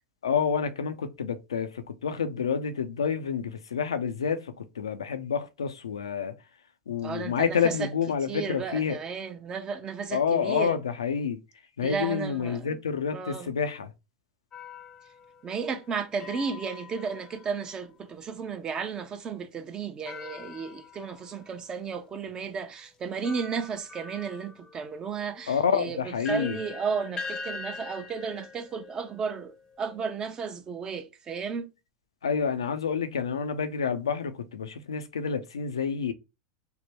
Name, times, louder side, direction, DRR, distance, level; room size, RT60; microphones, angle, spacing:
voice 1, 0.2-6.3 6.9-9.0 10.1-11.4 11.8-13.9 25.5-26.6 32.2-36.1, left 6 dB, 90° left, 0.5 m, -28 dB
voice 2, 7.0-7.9 8.3-10.8 11.8-12.8 13.1-13.5 15.4-31.7, right 5 dB, 30° right, 0.7 m, -34 dB
sound 1, 14.5-18.0 20.1-21.5 22.3-22.4 23.2-30.1, left 4 dB, 30° left, 0.7 m, -43 dB
3.4 x 2.1 x 4.3 m
hypercardioid pair, 95°, 3 cm